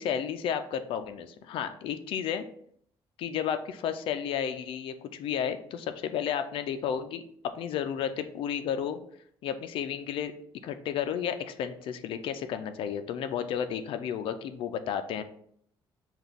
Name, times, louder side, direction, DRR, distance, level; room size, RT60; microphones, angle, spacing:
voice 1, 0.0-2.4 3.2-9.0 9.4-10.3 10.6-15.2, left 8 dB, 70° left, 9 dB, 0.4 m, -32 dB
5.8 x 2.3 x 3.4 m, 0.65 s
cardioid pair, 135°, 9 cm